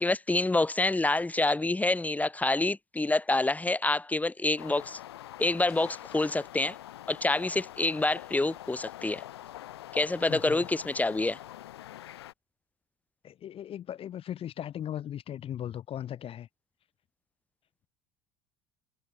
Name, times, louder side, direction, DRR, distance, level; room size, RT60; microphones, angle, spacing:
voice 1, 0.0-5.0 5.4-6.8 7.1-9.2 9.9-11.4, left 2 dB, 10° left, 1.2 m, -27 dB
sound 1, 4.6-12.3, left 13 dB, 80° left, 4.5 m, -45 dB
voice 2, 10.3-10.6 13.2-16.5, left 10 dB, 45° left, 1.5 m, -38 dB
hypercardioid pair, 65°, 13 cm